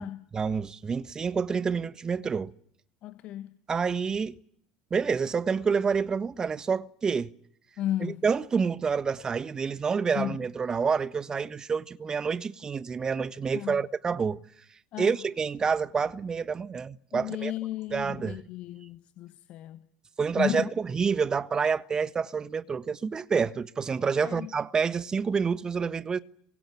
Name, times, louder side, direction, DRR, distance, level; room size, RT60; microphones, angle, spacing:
voice 1, 0.3-2.5 3.7-4.4 4.9-7.3 8.0-14.4 15.0-17.5 17.9-18.4 20.2-26.2, right 5 dB, 30° right, 1.4 m, -28 dB
voice 2, 3.0-3.5 7.8-8.2 10.1-10.4 13.5-13.8 14.9-15.2 17.1-19.8 20.3-20.7 24.2-24.5, left 13 dB, 50° left, 1.4 m, -34 dB
27.0 x 24.0 x 9.1 m
hypercardioid pair, 70°, 3 cm